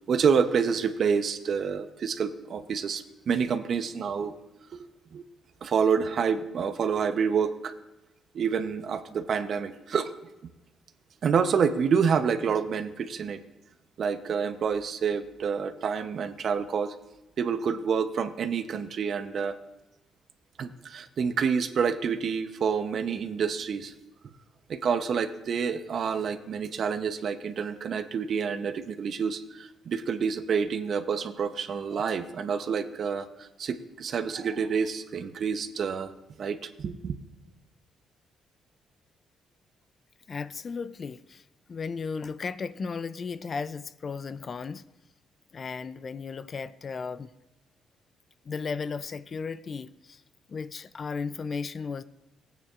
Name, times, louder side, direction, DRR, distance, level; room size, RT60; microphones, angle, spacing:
voice 1, 0.1-4.4 4.7-5.2 5.6-7.7 8.3-10.1 11.2-13.4 14.0-16.9 17.4-19.6 20.6-23.9 24.7-36.1 36.4-37.2, right 6 dB, 55° right, 0.7 m, -28 dB
voice 2, 40.3-41.4 41.7-44.8 45.5-47.3 48.5-50.2 50.5-52.0, left 5 dB, 40° left, 0.3 m, -35 dB
17.0 x 9.0 x 2.4 m
cardioid pair, 90°, 0 cm